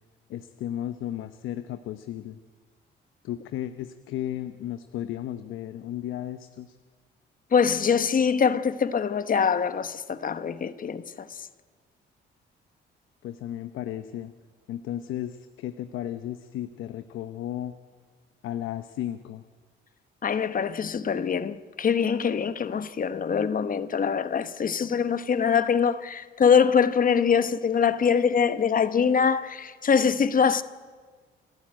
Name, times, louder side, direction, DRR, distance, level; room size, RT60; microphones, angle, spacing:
voice 1, 0.3-2.4 3.2-6.8 13.2-14.3 14.7-17.7 18.4-19.4, left 12 dB, 85° left, 0.9 m, -34 dB
voice 2, 7.5-11.3 20.2-30.6, left 6 dB, 45° left, 1.1 m, -23 dB
29.5 x 12.5 x 8.9 m
cardioid pair, 90°, 20 cm